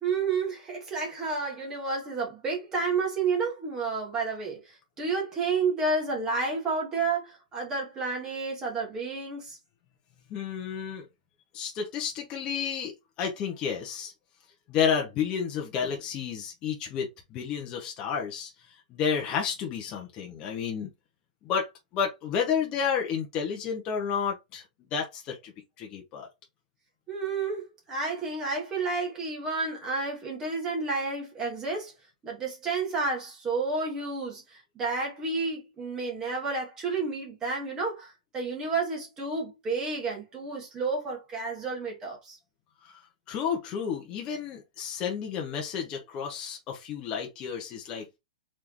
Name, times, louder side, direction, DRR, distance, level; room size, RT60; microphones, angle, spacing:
voice 1, 0.0-9.6 27.1-31.9 32.2-42.4, right 4 dB, 10° right, 1.4 m, -31 dB
voice 2, 10.3-11.1 11.5-14.1 14.7-18.5 18.9-20.9 21.4-24.6 24.9-25.5 25.8-26.3 42.8-43.0 43.3-48.1, left 7 dB, 20° left, 0.7 m, -31 dB
4.1 x 3.5 x 2.9 m
hypercardioid pair, 175°, 5 cm